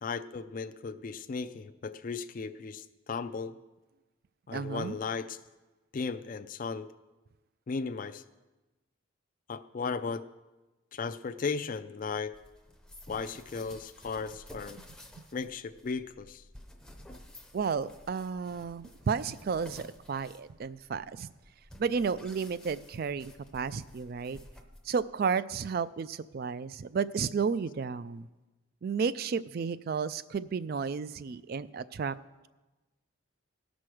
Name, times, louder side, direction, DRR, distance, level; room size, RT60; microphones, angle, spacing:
voice 1, 0.0-3.6 4.5-5.4 5.9-6.9 7.7-8.2 9.5-10.2 10.9-12.3 13.1-14.8 15.3-16.4, left 5 dB, 40° left, 11 dB, 0.4 m, -36 dB
voice 2, 4.5-5.0 17.5-21.3 21.8-24.4 24.8-28.3 28.8-32.2, right 5 dB, 45° right, 16 dB, 0.3 m, -32 dB
sound 1, 12.3-25.1, left 1 dB, 5° left, 0.6 m, -53 dB
18.0 x 6.1 x 4.8 m, 1.1 s
head